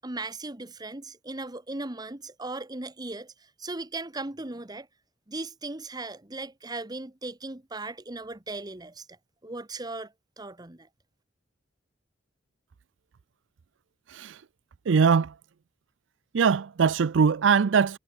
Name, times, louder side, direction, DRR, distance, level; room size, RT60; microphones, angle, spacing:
voice 1, 0.0-4.9 5.3-9.1 9.4-10.9, right 2 dB, 20° right, 1.3 m, -37 dB
voice 2, 14.1-14.4 14.9-15.4 16.3-18.0, right 6 dB, 90° right, 0.5 m, -22 dB
head